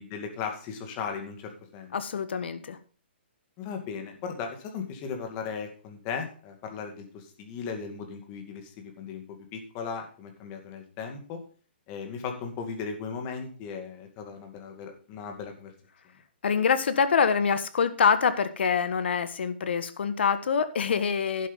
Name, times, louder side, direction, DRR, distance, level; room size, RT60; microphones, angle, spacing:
voice 1, 0.0-2.0 3.6-11.4 11.9-15.7, left 6 dB, 25° left, 4 dB, 2.3 m, -37 dB
voice 2, 1.9-2.8 16.4-21.5, left 6 dB, 70° left, 11 dB, 1.5 m, -25 dB
11.0 x 7.9 x 5.4 m, 0.41 s
hypercardioid pair, 160°, 6 cm